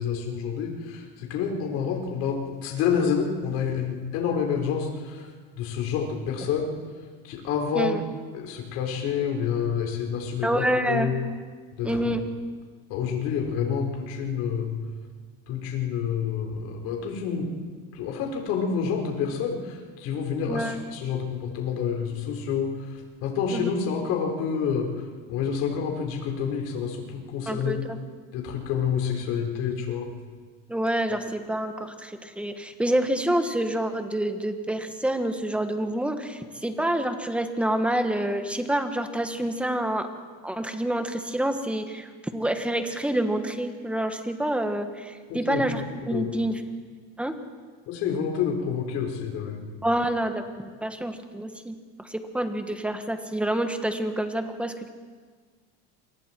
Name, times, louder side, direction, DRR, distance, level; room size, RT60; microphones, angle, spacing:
voice 1, 0.0-6.8 7.2-8.0 8.3-11.2 11.8-12.2 12.9-14.7 15.5-17.5 17.9-27.8 28.3-30.1 45.3-45.6 46.1-46.3 47.9-49.6, left 7 dB, 60° left, 1 dB, 4.8 m, -28 dB
voice 2, 10.4-11.1 11.8-12.2 20.5-20.8 23.5-23.7 27.5-28.0 30.7-40.1 40.4-45.8 46.1-46.6 47.2-47.3 49.8-54.9, right 1 dB, 5° right, 7 dB, 1.6 m, -27 dB
28.0 x 24.0 x 4.6 m, 1.5 s
supercardioid pair, 130°, 29 cm